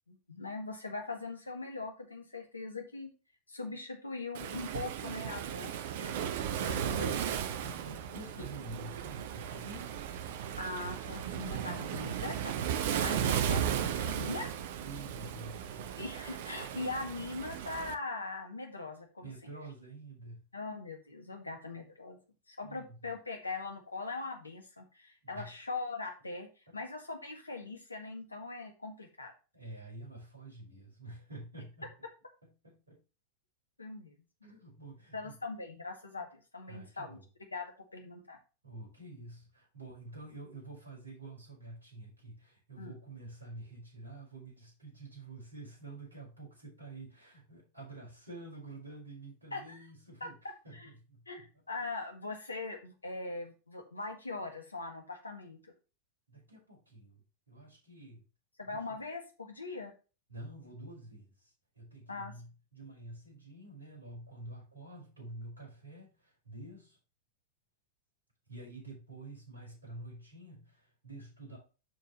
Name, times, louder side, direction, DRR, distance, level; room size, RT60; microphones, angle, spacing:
voice 1, 0.1-3.1 3.5-6.4 6.7-7.2 10.6-14.5 16.0-19.3 20.5-22.2 22.5-29.3 33.8-34.2 34.4-34.5 35.1-37.2 37.5-38.4 42.8-42.9 49.5-49.8 50.2-50.9 51.3-55.7 58.6-59.9 62.1-62.3, left 3 dB, 80° left, 4 dB, 1.9 m, -41 dB
Waves surf, 4.3-17.9, right 9 dB, 55° right, 0.8 m, -35 dB
voice 2, 7.6-9.9 14.8-15.9 19.2-20.4 22.6-23.1 25.2-25.5 26.7-26.8 29.5-31.9 32.4-33.0 34.4-35.3 36.7-37.2 38.6-51.2 51.5-51.6 56.3-58.2 58.7-58.8 60.3-67.0 68.5-71.6, right 2 dB, 75° right, -2 dB, 5.0 m, -48 dB
12.0 x 4.7 x 3.2 m, 0.32 s
figure-of-eight pair, 90°, 0 cm